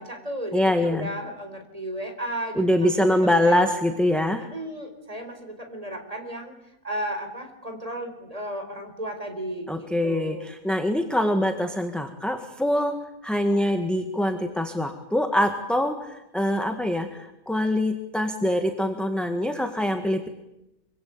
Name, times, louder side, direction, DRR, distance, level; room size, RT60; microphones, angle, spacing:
voice 1, 0.0-2.9 3.4-3.6 4.5-6.5 6.8-10.5, right 1 dB, 25° right, 5 dB, 4.2 m, -34 dB
voice 2, 0.5-1.1 2.5-4.5 9.7-13.0 13.2-20.3, left 1 dB, ahead, 5 dB, 1.7 m, -24 dB
25.5 x 24.5 x 8.7 m, 0.89 s
omnidirectional pair, 1.5 m